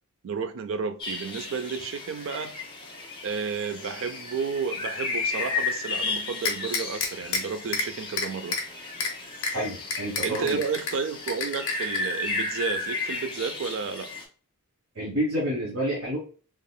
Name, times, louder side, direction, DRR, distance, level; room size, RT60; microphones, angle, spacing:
voice 1, 0.2-2.6 3.2-8.6 10.2-14.1, right 5 dB, 60° right, 0.4 m, -32 dB
sound 1, 1.0-14.2, left 3 dB, 20° left, 0.8 m, -34 dB
sound 2, 6.4-7.4 7.7-7.9 8.2-8.6 9.0-9.1 9.4-9.5 9.9-10.9 11.3-12.0, left 4 dB, 75° left, 0.8 m, -28 dB
voice 2, 9.5-10.6 14.9-16.2, equal, 80° right, 1.2 m, -29 dB
3.7 x 2.9 x 2.2 m
head